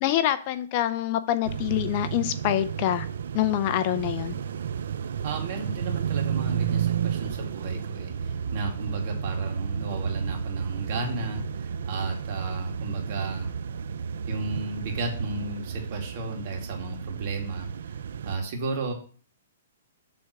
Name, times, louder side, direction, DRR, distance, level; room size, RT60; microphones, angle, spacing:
voice 1, 0.0-3.1 3.3-4.4, left 12 dB, 35° left, 12 dB, 0.5 m, -26 dB
sound 1, 1.4-18.4, right 7 dB, 70° right, 0.5 m, -32 dB
voice 2, 5.2-13.5 14.3-18.0 18.2-18.9, right 3 dB, 40° right, 2 dB, 2.0 m, -33 dB
7.7 x 3.6 x 6.6 m, 0.42 s
hypercardioid pair, 160°, 0 cm